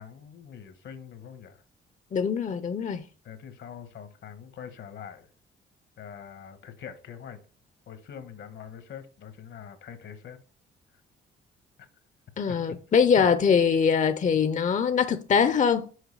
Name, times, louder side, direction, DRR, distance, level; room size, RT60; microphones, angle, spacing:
voice 1, 0.0-1.6 3.2-5.3 6.0-7.4 7.9-10.4 11.8-11.9 12.5-12.8 13.2-13.3, left 8 dB, 70° left, 1.3 m, -43 dB
voice 2, 2.1-3.0 12.4-15.9, left 6 dB, 40° left, 0.6 m, -23 dB
6.5 x 4.8 x 4.7 m
cardioid pair, 75°, 20 cm